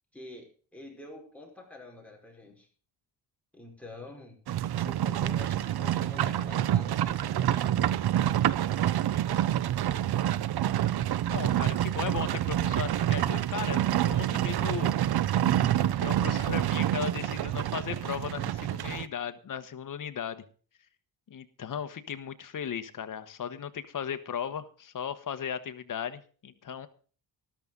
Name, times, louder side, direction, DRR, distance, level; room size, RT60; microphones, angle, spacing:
voice 1, 0.1-2.7 3.5-4.4 4.8-7.7 11.5-11.8, left 2 dB, 5° left, -1 dB, 4.7 m, -47 dB
Livestock farm animals working animals, 4.5-19.0, right 12 dB, 70° right, 0.7 m, -27 dB
voice 2, 11.3-14.9 16.0-20.4 21.3-26.9, left 8 dB, 50° left, 10 dB, 1.3 m, -36 dB
13.5 x 12.5 x 3.9 m, 0.41 s
cardioid pair, 120°, 40 cm